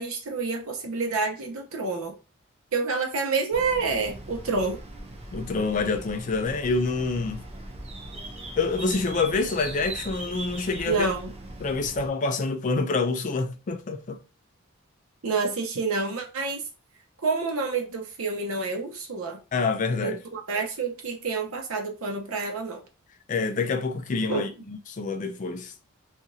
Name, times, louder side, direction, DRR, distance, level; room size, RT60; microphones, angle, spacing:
voice 1, 0.0-2.2 2.7-4.8 10.9-11.3 15.2-16.6 17.2-19.4 20.0-22.8 24.3-24.4, right 4 dB, 75° right, 0.7 m, -28 dB
sound 1, 3.5-12.1, right 1 dB, 30° right, 0.5 m, -40 dB
voice 2, 5.3-7.4 8.6-11.1 11.6-14.2 19.5-20.2 23.3-25.7, left 3 dB, 35° left, 0.3 m, -27 dB
2.9 x 2.4 x 2.6 m
head